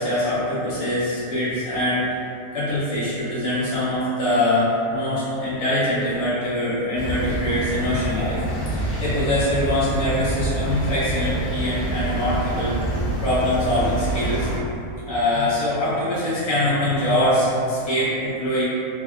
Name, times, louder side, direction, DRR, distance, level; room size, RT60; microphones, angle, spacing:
voice 1, 0.0-2.1 2.5-8.4 8.7-14.5 15.1-18.6, left 1 dB, 30° left, -12 dB, 0.8 m, -23 dB
sound 1, 7.0-14.6, right 1 dB, 75° left, 1.1 m, -26 dB
3.6 x 2.0 x 2.3 m, 2.6 s
omnidirectional pair, 1.7 m